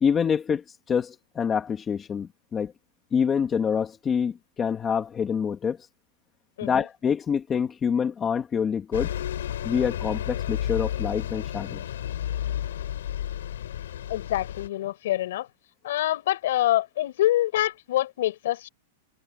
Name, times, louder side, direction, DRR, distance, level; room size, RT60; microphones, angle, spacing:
voice 1, 0.0-2.7 3.1-5.8 6.6-9.1 9.6-11.8, left 7 dB, 15° left, 2.2 m, -26 dB
Bus, 8.9-14.7, left 11 dB, 90° left, 4.7 m, -31 dB
voice 2, 14.1-15.5 15.8-18.7, left 14 dB, 55° left, 5.7 m, -25 dB
supercardioid pair, 175°, 0 cm